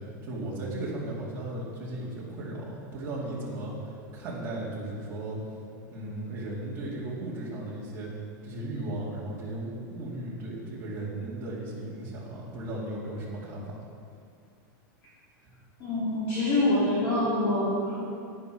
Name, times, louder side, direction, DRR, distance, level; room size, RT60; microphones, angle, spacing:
voice 1, 0.0-5.4 5.9-8.1 8.4-13.7 15.4-15.5, right 1 dB, 20° right, -6 dB, 2.5 m, -36 dB
voice 2, 15.8-18.0, left 1 dB, 30° left, -9 dB, 2.8 m, -25 dB
10.5 x 9.7 x 4.8 m, 2.3 s
supercardioid pair, 170°, 11 cm